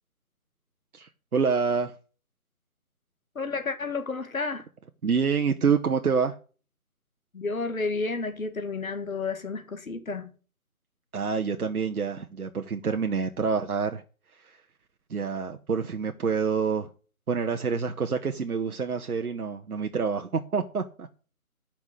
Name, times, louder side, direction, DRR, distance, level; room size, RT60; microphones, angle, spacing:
voice 1, 0.9-1.9 5.0-6.4 11.1-14.0 15.1-16.9 17.3-21.1, right 5 dB, 75° right, 1.1 m, -27 dB
voice 2, 3.4-4.6 7.3-10.3, left 3 dB, 65° left, 1.8 m, -31 dB
8.3 x 5.9 x 8.1 m
figure-of-eight pair, 165°, 44 cm